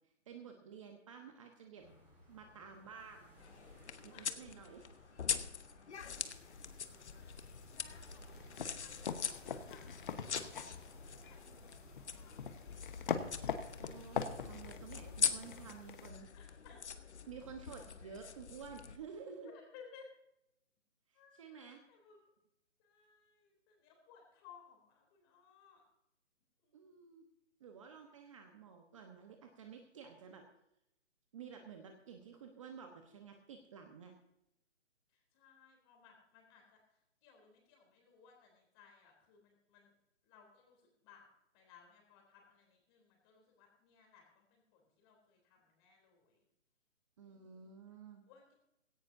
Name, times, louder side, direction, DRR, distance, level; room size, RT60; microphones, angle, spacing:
voice 1, 0.3-1.9 2.3-3.3 4.0-4.9 13.8-16.3 17.3-19.5 21.1-21.8 26.7-27.2 27.6-30.4 31.3-34.1 47.2-48.3, right 6 dB, 25° right, 4 dB, 1.1 m, -52 dB
sound 1, 1.8-15.7, right 1 dB, 5° right, 4.3 m, -61 dB
sound 2, 3.4-19.0, left 7 dB, 65° left, 1.2 m, -43 dB
sound 3, 5.9-16.1, left 6 dB, 45° left, 1.2 m, -44 dB
voice 2, 6.0-7.4 8.0-10.5 10.8-12.6 12.9-13.4 16.3-16.8 19.4-20.1 21.1-22.2 22.8-25.8 26.6-26.8 35.1-40.0 40.2-41.3 41.5-46.5 47.2-47.8 48.1-48.5, left 6 dB, 20° left, 1 dB, 3.4 m, -62 dB
17.0 x 16.5 x 2.7 m, 0.83 s
hypercardioid pair, 160°, 36 cm